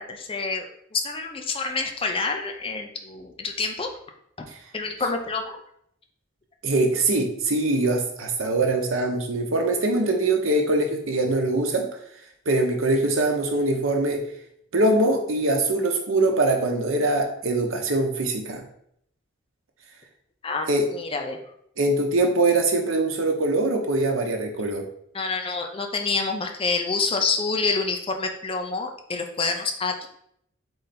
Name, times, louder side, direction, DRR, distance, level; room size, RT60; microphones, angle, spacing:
voice 1, 0.0-3.9 4.4-4.5 4.7-5.6 20.4-21.4 25.1-30.1, left 4 dB, 25° left, 4 dB, 0.5 m, -27 dB
voice 2, 6.6-11.9 12.5-14.2 14.7-18.7 20.7-20.9 21.8-24.8, right 2 dB, 85° right, 3 dB, 0.8 m, -23 dB
3.9 x 3.3 x 4.1 m, 0.71 s
head